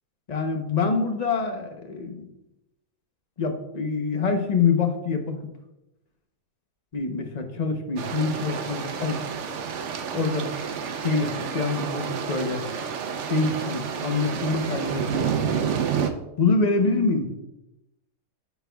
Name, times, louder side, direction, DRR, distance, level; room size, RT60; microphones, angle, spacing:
voice 1, 0.3-2.3 3.4-5.5 6.9-9.2 10.1-10.5 10.9-12.6 13.3-15.3 16.4-17.3, left 4 dB, 35° left, 5 dB, 0.7 m, -25 dB
sound 1, 8.0-16.1, right 7 dB, 60° right, 0.9 m, -29 dB
13.5 x 4.5 x 2.3 m, 0.92 s
omnidirectional pair, 1.6 m